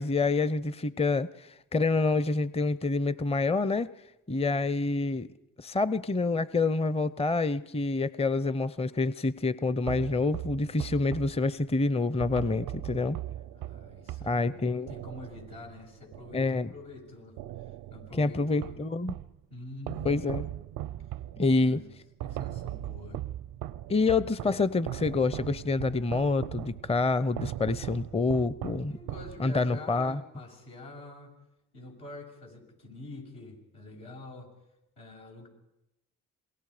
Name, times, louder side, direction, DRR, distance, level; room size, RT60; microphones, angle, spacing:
voice 1, 0.0-3.9 4.3-5.3 5.6-13.2 14.2-14.9 16.3-16.7 18.2-19.2 20.0-20.4 21.4-21.8 23.9-29.0 29.4-30.2, left 3 dB, 15° left, 17 dB, 0.7 m, -27 dB
sound 1, 9.9-17.0 17.4-19.4 19.9-29.8, right 13 dB, 85° right, 0.7 m, -40 dB
voice 2, 13.5-17.4 17.6-18.8 19.5-20.3 21.4-21.8 22.2-23.2 28.9-31.4 31.7-34.5 35.0-35.5, left 2 dB, 85° left, -2 dB, 7.1 m, -46 dB
27.5 x 21.5 x 5.0 m, 0.91 s
supercardioid pair, 50°, 37 cm